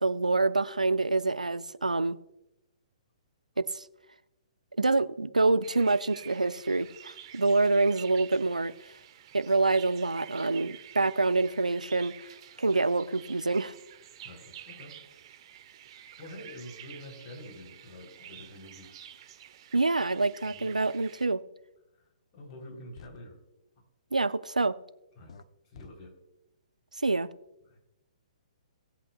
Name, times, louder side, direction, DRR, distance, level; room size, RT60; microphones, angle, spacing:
voice 1, 0.0-2.2 3.6-3.8 4.8-8.7 9.3-12.3 12.6-13.7 19.7-21.4 24.1-24.7 27.0-27.3, right 3 dB, 90° right, 15 dB, 0.5 m, -26 dB
sound 1, 5.6-21.3, right 10 dB, 45° right, 0.9 m, -50 dB
voice 2, 14.2-15.0 15.9-18.9 20.4-20.8 21.9-22.0 22.3-23.4 25.2-25.4 25.7-26.1 27.7-27.8, left 1 dB, 30° left, 0 dB, 3.7 m, -47 dB
sound 2, 22.5-22.6 22.9-23.2 25.3-25.4 25.7-25.9, left 5 dB, 60° left, 0.9 m, -49 dB
17.5 x 8.2 x 2.4 m, 0.90 s
figure-of-eight pair, 125°, 4 cm